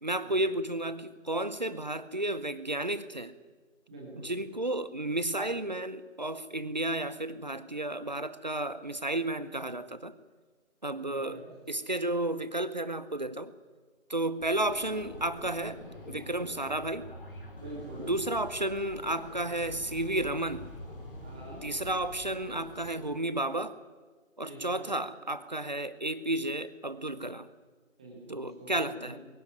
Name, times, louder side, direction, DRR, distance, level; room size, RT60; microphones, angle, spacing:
voice 1, 0.0-3.3 4.2-10.2 10.8-11.4 11.7-13.5 14.1-17.1 18.1-20.7 21.6-23.8 24.4-27.5 28.3-29.2, right 1 dB, 35° right, 15 dB, 0.8 m, -32 dB
voice 2, 3.9-4.3 11.1-11.5 17.6-18.1 21.2-21.7 24.4-24.9 28.0-29.2, right 1 dB, 5° right, -3 dB, 1.5 m, -45 dB
sound 1, 14.4-23.2, left 1 dB, 40° left, 5.3 m, -46 dB
22.0 x 16.5 x 9.8 m, 1.4 s
figure-of-eight pair, 160°, 40 cm